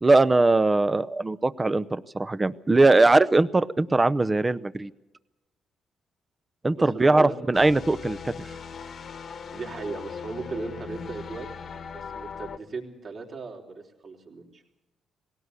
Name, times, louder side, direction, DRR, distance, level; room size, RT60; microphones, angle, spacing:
voice 1, 0.0-4.9 6.6-8.5, right 2 dB, 20° right, 14 dB, 0.7 m, -21 dB
voice 2, 6.7-7.4 9.5-11.5 11.9-14.6, right 4 dB, 55° right, 0 dB, 4.2 m, -37 dB
sound 1, 7.5-12.6, left 6 dB, 55° left, 1.3 m, -39 dB
19.0 x 17.5 x 8.3 m, 1.0 s
cardioid pair, 90°, 0 cm